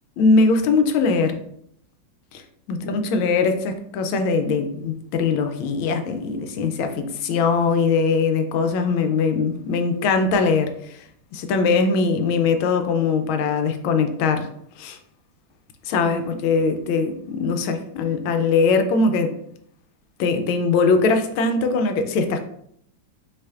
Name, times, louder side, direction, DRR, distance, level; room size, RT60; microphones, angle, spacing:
voice 1, 0.2-1.4 2.3-2.4 2.7-11.0 11.3-14.5 14.8-15.0 15.9-19.3 20.2-22.4, left 4 dB, 85° left, 1.4 m, -21 dB
5.6 x 3.2 x 2.4 m
omnidirectional pair, 2.2 m